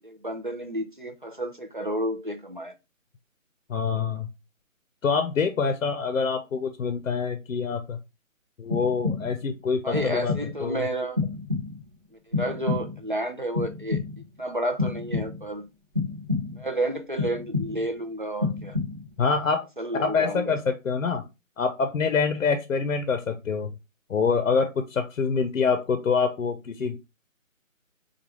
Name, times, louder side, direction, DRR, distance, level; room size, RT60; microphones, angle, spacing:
voice 1, 0.0-2.7 9.8-11.2 12.4-14.0 14.4-15.6 16.6-18.8 19.8-20.6, right 1 dB, 40° right, 0.4 m, -31 dB
voice 2, 3.7-4.3 5.0-8.0 8.6-10.3 10.6-10.9 19.2-19.7 19.9-21.2 21.6-23.7 24.1-27.0, left 5 dB, 70° left, 0.6 m, -25 dB
sound 1, 8.7-9.5 9.9-10.7 11.2-12.0 12.3-13.1 13.5-14.4 14.8-15.6 15.9-16.7 17.2-18.0 18.4-19.2, left 4 dB, 25° right, 1.0 m, -30 dB
4.7 x 2.3 x 2.9 m
hypercardioid pair, 170°, 41 cm